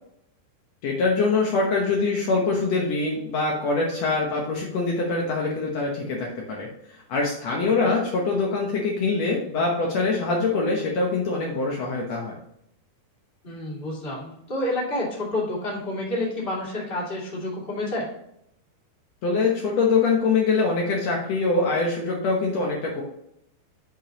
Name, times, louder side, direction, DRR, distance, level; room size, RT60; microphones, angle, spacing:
voice 1, 0.8-6.7 7.1-12.4 19.2-23.0, left 3 dB, 90° left, -2 dB, 1.4 m, -24 dB
voice 2, 13.4-18.1, left 1 dB, 20° left, -4 dB, 1.6 m, -29 dB
8.6 x 5.1 x 2.9 m, 0.76 s
omnidirectional pair, 4.7 m